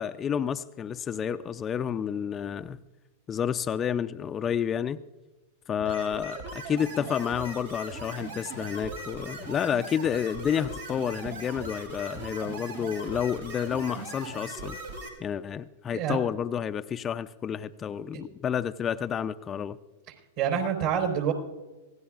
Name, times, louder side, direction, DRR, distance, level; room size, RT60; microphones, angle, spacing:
voice 1, 0.0-2.8 3.3-5.0 5.7-14.8 15.2-19.8, left 8 dB, 25° left, 10 dB, 0.5 m, -30 dB
sound 1, 5.8-15.1, right 2 dB, 90° right, 5.3 m, -39 dB
voice 2, 20.4-21.3, right 8 dB, 55° right, 4 dB, 4.1 m, -26 dB
25.5 x 17.5 x 2.5 m, 1.1 s
hypercardioid pair, 105°, 0 cm